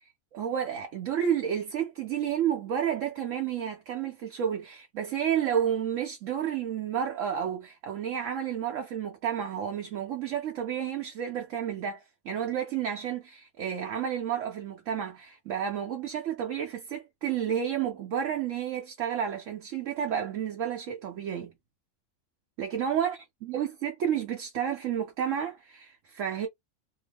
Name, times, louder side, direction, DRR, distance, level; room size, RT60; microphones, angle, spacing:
voice 1, 0.3-21.5 22.6-26.5, right 9 dB, 70° right, 1.0 m, -31 dB
2.8 x 2.1 x 3.3 m
omnidirectional pair, 1.5 m